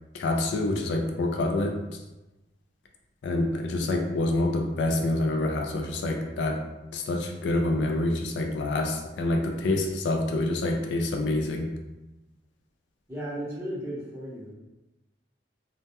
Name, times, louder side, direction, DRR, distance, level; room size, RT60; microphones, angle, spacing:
voice 1, 0.1-1.8 3.2-6.6 6.9-11.7, left 2 dB, 70° left, 3 dB, 0.3 m, -27 dB
voice 2, 13.1-14.5, equal, 15° right, -9 dB, 0.8 m, -35 dB
2.2 x 2.1 x 2.7 m, 1.0 s
head